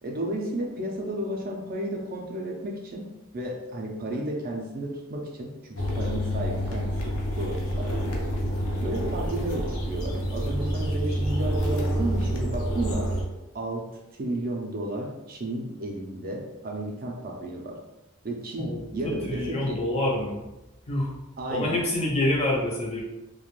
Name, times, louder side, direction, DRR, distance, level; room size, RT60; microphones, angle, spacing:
voice 1, 0.0-3.1 3.3-8.1 8.8-13.1 13.5-13.9 14.2-17.8 18.2-19.8 21.4-21.8, right 1 dB, 40° right, 0 dB, 0.4 m, -33 dB
sound 1, 5.7-13.2, equal, 85° left, 0.5 m, -28 dB
voice 2, 18.6-20.5 20.9-21.2 21.5-23.0, left 1 dB, 30° left, -3 dB, 0.5 m, -27 dB
2.4 x 2.1 x 3.0 m, 0.97 s
head